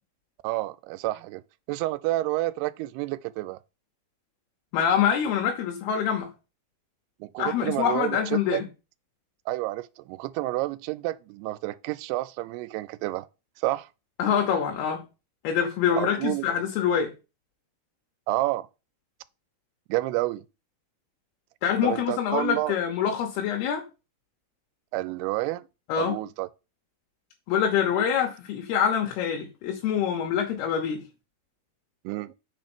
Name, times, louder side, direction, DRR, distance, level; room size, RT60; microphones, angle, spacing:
voice 1, 0.4-1.4 1.7-3.6 7.2-8.6 9.5-13.3 13.6-13.9 15.9-16.5 18.3-18.7 19.9-20.5 21.8-22.7 24.9-25.7 26.0-26.5 32.0-32.3, right 18 dB, 85° right, 2.6 m, -29 dB
voice 2, 4.7-6.3 7.4-8.7 14.2-15.0 15.4-17.1 21.6-23.8 25.9-26.2 27.5-31.0, left 8 dB, 80° left, 3.1 m, -25 dB
6.6 x 4.4 x 6.0 m
omnidirectional pair, 4.6 m